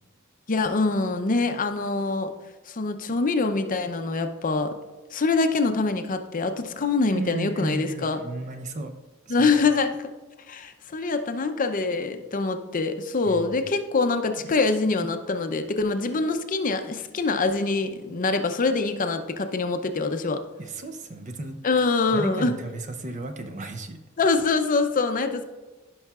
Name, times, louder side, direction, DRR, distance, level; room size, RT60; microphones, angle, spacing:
voice 1, 0.5-2.3 2.7-4.7 5.1-8.2 9.3-10.1 10.5-20.4 21.6-22.5 24.2-25.4, left 3 dB, 40° left, 8 dB, 0.6 m, -24 dB
voice 2, 7.1-8.9 9.3-9.5 13.2-13.5 15.0-15.1 20.6-21.6 22.1-24.0, right 2 dB, 35° right, 6 dB, 0.6 m, -34 dB
16.0 x 5.6 x 2.4 m, 1.2 s
head